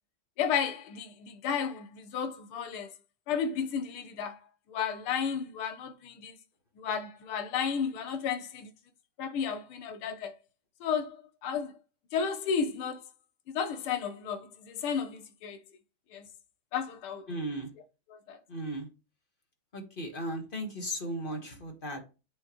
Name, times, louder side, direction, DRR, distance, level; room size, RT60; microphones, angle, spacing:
voice 1, 0.4-2.9 3.3-4.4 4.7-6.4 6.8-8.7 9.2-10.4 10.8-11.7 12.1-13.0 13.5-15.6 16.1-16.3 16.7-17.3 18.1-18.4, left 7 dB, 85° left, 1.7 m, -33 dB
voice 2, 17.3-17.7 18.5-18.9 19.7-22.0, right 1 dB, 30° left, 1.3 m, -36 dB
8.8 x 4.0 x 3.0 m
omnidirectional pair, 2.3 m